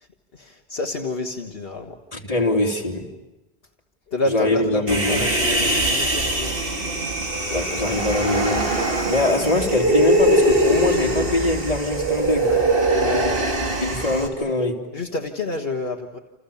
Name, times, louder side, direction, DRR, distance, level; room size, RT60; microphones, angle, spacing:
voice 1, 0.3-2.0 4.1-6.6 12.4-12.7 12.9-13.4 14.9-16.2, left 2 dB, 65° left, 1.8 m, -29 dB
voice 2, 2.1-3.1 4.3-5.3 7.5-8.7 9.1-12.5 13.8-14.9, left 2 dB, 35° left, 3.1 m, -23 dB
Human voice, 4.9-14.3, right 1 dB, 60° right, 3.2 m, -22 dB
29.5 x 28.0 x 7.2 m
omnidirectional pair, 1.0 m